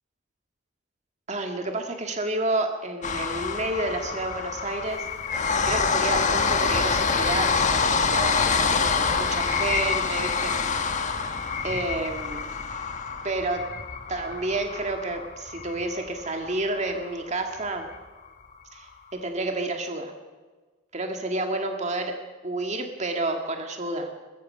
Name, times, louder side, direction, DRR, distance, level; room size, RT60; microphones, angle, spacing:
voice 1, 1.3-5.1 5.6-10.6 11.0-11.3 11.6-12.5 13.2-13.6 14.1-17.9 18.7-20.1 20.9-22.2 22.4-24.1, right 2 dB, 35° right, 3 dB, 2.0 m, -30 dB
sound 1, 3.0-17.1 17.6-17.7 17.9-18.0, left 5 dB, 40° left, 1.4 m, -26 dB
22.0 x 21.5 x 5.7 m, 1.3 s
head